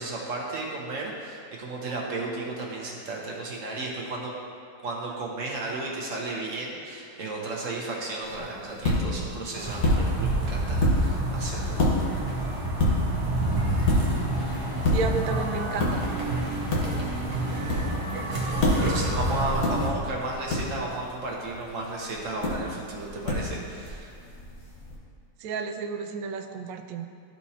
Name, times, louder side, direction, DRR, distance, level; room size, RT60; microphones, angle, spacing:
voice 1, 0.0-4.3 4.8-11.8 18.5-24.1, right 2 dB, 55° right, -2 dB, 1.2 m, -34 dB
sound 1, 8.2-25.0, left 1 dB, 60° left, 1.6 m, -30 dB
sound 2, 9.5-19.9, right 1 dB, 25° right, 0.7 m, -29 dB
voice 2, 14.9-16.0 25.4-27.1, right 4 dB, 70° right, 6 dB, 0.9 m, -32 dB
13.0 x 4.4 x 2.8 m, 2.3 s
omnidirectional pair, 1.8 m